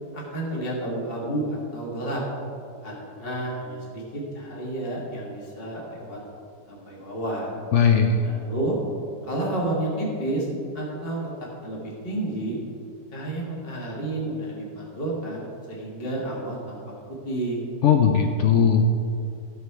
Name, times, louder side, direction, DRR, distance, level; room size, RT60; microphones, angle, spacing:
voice 1, 0.1-2.2 2.8-6.2 6.7-7.5 8.2-8.8 9.2-10.5 10.7-11.3 11.6-12.6 13.1-16.8 17.3-17.6, right 1 dB, 35° left, -4 dB, 1.8 m, -30 dB
voice 2, 7.7-8.3 17.8-18.9, left 6 dB, 80° left, 4 dB, 0.6 m, -18 dB
12.5 x 6.9 x 4.6 m, 2.5 s
omnidirectional pair, 1.9 m